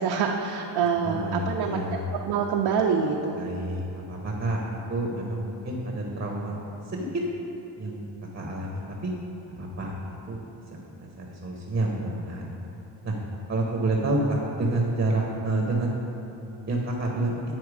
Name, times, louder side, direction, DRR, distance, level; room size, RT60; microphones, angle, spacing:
voice 1, 0.0-3.4, right 6 dB, 60° right, 1 dB, 0.6 m, -26 dB
voice 2, 1.0-2.0 3.3-4.6 4.9-6.6 6.9-7.1 7.8-8.1 8.3-9.1 9.6-10.0 10.3-10.4 11.2-12.5 13.0-13.1 13.5-15.9 16.7-17.3, right 2 dB, 25° right, -1 dB, 0.9 m, -28 dB
9.7 x 4.4 x 4.8 m, 3.0 s
cardioid pair, 120°, 48 cm